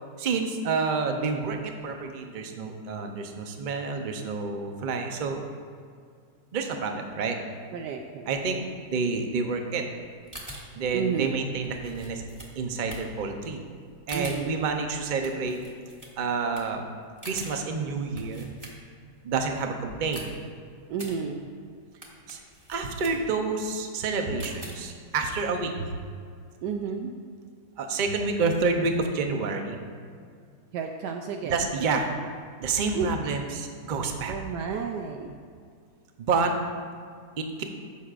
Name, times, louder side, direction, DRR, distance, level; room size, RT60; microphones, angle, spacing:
voice 1, 0.2-5.4 6.5-7.4 8.3-9.8 10.7-12.2 12.6-13.6 14.1-15.6 16.2-16.8 17.2-18.5 19.2-20.3 21.0-21.1 22.3-22.4 22.7-25.9 27.8-29.8 31.4-32.1 32.6-34.4 36.2-36.5 37.4-37.6, right 4 dB, 55° right, 4 dB, 0.5 m, -28 dB
voice 2, 7.7-8.4 10.9-11.4 14.1-14.6 20.9-21.5 26.6-27.1 30.7-31.7 32.9-33.1 34.3-35.4, right 6 dB, 80° right, 3 dB, 1.2 m, -32 dB
sound 1, 10.0-19.2 19.5-25.2, equal, 10° right, 1.3 m, -45 dB
15.0 x 6.4 x 2.5 m, 2.2 s
omnidirectional pair, 1.8 m